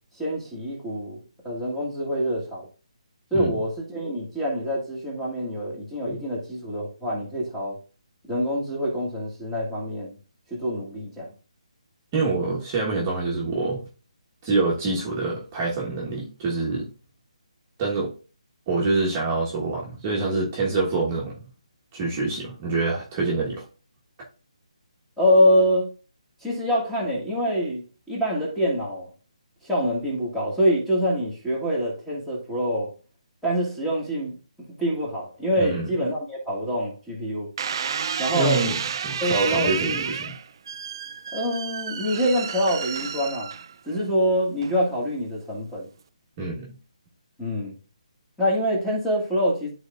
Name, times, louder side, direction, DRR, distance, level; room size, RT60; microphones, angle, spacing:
voice 1, 0.1-2.7 3.3-7.8 8.2-10.2 10.5-11.3 25.2-25.9 26.4-29.1 29.6-32.9 33.4-34.4 34.8-37.5 38.2-38.6 39.2-40.1 41.3-43.5 43.8-45.9 47.4-47.8 48.4-49.7, equal, ahead, 1.6 m, -25 dB
voice 2, 12.1-13.8 14.4-16.9 17.8-18.1 18.7-21.5 21.9-23.6 35.6-35.9 38.3-40.3 46.4-46.7, right 3 dB, 20° right, 1.3 m, -26 dB
sound 1, 37.6-44.0 44.6-45.1, right 7 dB, 40° right, 0.3 m, -31 dB
11.5 x 4.0 x 2.5 m
hypercardioid pair, 165°, 4 cm